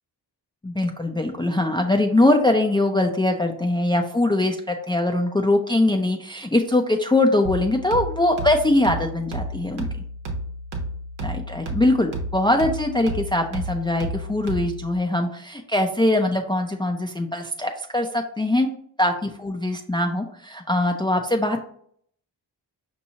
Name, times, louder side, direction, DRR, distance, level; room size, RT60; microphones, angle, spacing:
voice 1, 0.6-10.0 11.2-18.7 19.0-21.6, left 1 dB, 10° left, 3 dB, 0.5 m, -22 dB
sound 1, 7.4-15.0, right 1 dB, 80° right, 1.1 m, -32 dB
5.2 x 2.9 x 2.7 m, 0.63 s
cardioid pair, 45°, 45 cm